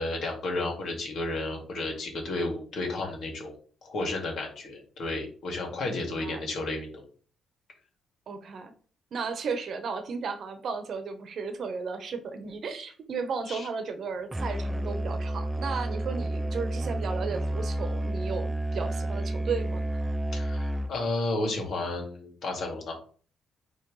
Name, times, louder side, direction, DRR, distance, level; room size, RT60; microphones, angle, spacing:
voice 1, 0.0-3.5 3.8-7.0 13.5-13.7 20.3-23.0, left 2 dB, 65° left, 1 dB, 2.3 m, -32 dB
voice 2, 5.8-6.4 8.3-8.7 9.1-20.0, right 5 dB, 60° right, 8 dB, 1.0 m, -34 dB
Musical instrument, 14.3-21.1, right 1 dB, 15° right, 0.3 m, -30 dB
9.1 x 3.2 x 3.3 m, 0.43 s
cardioid pair, 90°, 0 cm